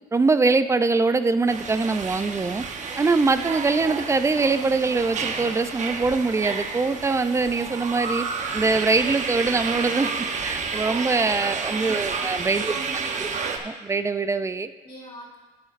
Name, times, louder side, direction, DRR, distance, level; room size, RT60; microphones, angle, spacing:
voice 1, 0.1-2.6 3.0-8.2 8.5-10.1 10.4-12.7 13.2-13.3 13.6-14.7, right 3 dB, 15° right, 12 dB, 0.4 m, -23 dB
sound 1, 1.5-13.6, right 5 dB, 45° right, 1.0 m, -30 dB
voice 2, 11.5-12.3 12.5-13.5 14.8-15.4, equal, 30° left, -3 dB, 3.1 m, -47 dB
12.0 x 9.3 x 2.5 m, 1.2 s
cardioid pair, 110°, 17 cm